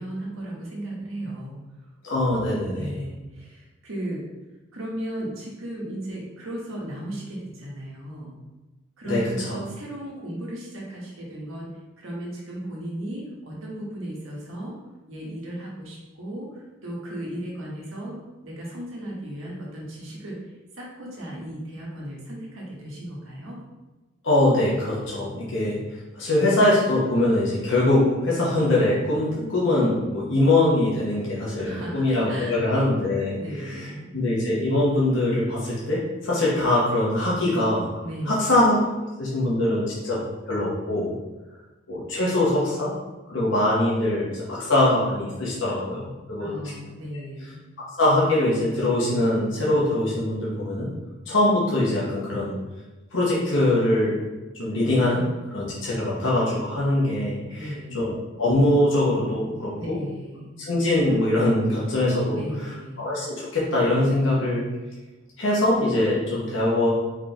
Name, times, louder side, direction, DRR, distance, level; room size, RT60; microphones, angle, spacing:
voice 1, 0.0-1.6 2.7-4.2 4.7-8.4 9.0-11.7 12.0-14.8 15.1-20.4 20.7-23.6 31.6-32.7 33.0-34.1 38.0-38.5 46.4-47.6 57.6-58.0 59.8-60.6 62.3-63.1, right 1 dB, 90° right, -3 dB, 1.3 m, -35 dB
voice 2, 2.0-2.9 9.0-9.6 24.2-25.8 26.1-33.9 34.1-38.7 39.2-40.2 40.5-41.1 41.9-42.9 43.3-46.5 47.8-50.9 51.3-52.5 53.1-54.2 54.6-55.2 55.5-57.7 57.9-58.1 58.4-60.0 60.6-62.4 63.0-64.6 65.4-66.9, left 1 dB, 70° left, -6 dB, 1.2 m, -22 dB
4.6 x 3.7 x 3.0 m, 1.1 s
head